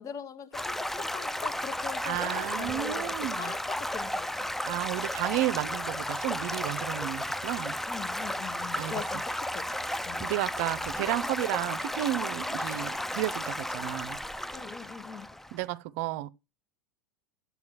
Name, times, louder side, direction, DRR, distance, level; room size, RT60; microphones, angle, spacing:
voice 1, 0.0-4.3 7.9-9.7 10.0-10.3 14.5-15.3, left 8 dB, 30° left, 1.0 m, -42 dB
Stream / Gurgling / Trickle dribble, 0.5-15.6, left 1 dB, 5° left, 0.4 m, -34 dB
voice 2, 2.0-3.5 4.7-7.8 8.7-8.9 10.2-14.2 15.5-16.3, right 16 dB, 50° right, 0.6 m, -32 dB
13.0 x 8.1 x 3.0 m
figure-of-eight pair, 85°, 10 cm